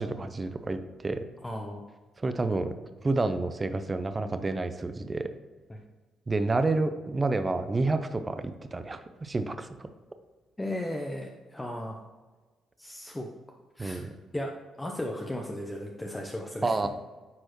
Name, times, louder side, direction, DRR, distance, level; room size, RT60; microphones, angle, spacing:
voice 1, 0.0-1.2 2.2-2.7 3.0-5.3 6.3-9.7 13.8-14.1 16.6-16.9, right 3 dB, 25° right, 9 dB, 0.6 m, -29 dB
voice 2, 1.4-1.8 5.7-5.8 10.6-12.0 12.8-13.3 13.8-14.1 14.3-16.9, left 1 dB, 15° left, 1 dB, 0.7 m, -36 dB
9.5 x 4.4 x 3.1 m, 1.3 s
cardioid pair, 90°, 0 cm